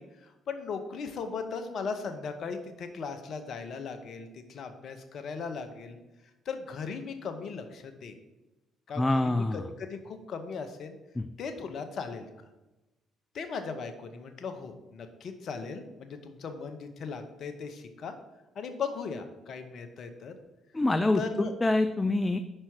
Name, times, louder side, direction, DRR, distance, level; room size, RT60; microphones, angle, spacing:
voice 1, 0.0-6.0 6.5-8.1 8.9-11.0 11.4-12.3 13.3-18.2 18.5-20.3 21.1-21.5, left 5 dB, 55° left, 7 dB, 0.8 m, -38 dB
voice 2, 9.0-9.6 11.2-11.3 20.7-22.4, left 2 dB, 20° left, 9 dB, 0.4 m, -26 dB
5.7 x 4.3 x 6.2 m, 1.0 s
hypercardioid pair, 50°, 0 cm